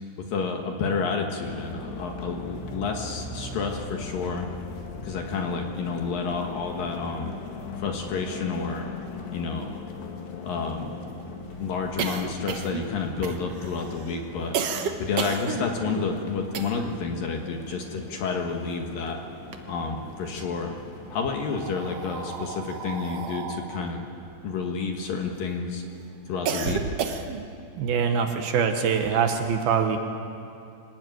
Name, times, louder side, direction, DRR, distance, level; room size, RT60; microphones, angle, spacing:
voice 1, 0.3-4.5 5.0-7.4 7.8-8.9 9.3-9.7 10.4-10.9 11.6-14.6 15.0-19.2 19.7-20.8 21.1-24.0 24.4-25.8 26.3-26.8, left 5 dB, 65° left, 2 dB, 3.0 m, -30 dB
sound 1, 1.4-21.2, left 4 dB, 90° left, 4.3 m, -40 dB
sound 2, 8.9-9.0 9.2-9.3 9.6-17.1 17.4-18.9 19.3-20.2 21.0-25.4 25.9-27.6, right 6 dB, 85° right, 1.3 m, -33 dB
voice 2, 27.8-30.0, right 6 dB, 70° right, 5 dB, 3.0 m, -24 dB
25.5 x 19.0 x 9.2 m, 2.5 s
omnidirectional pair, 4.8 m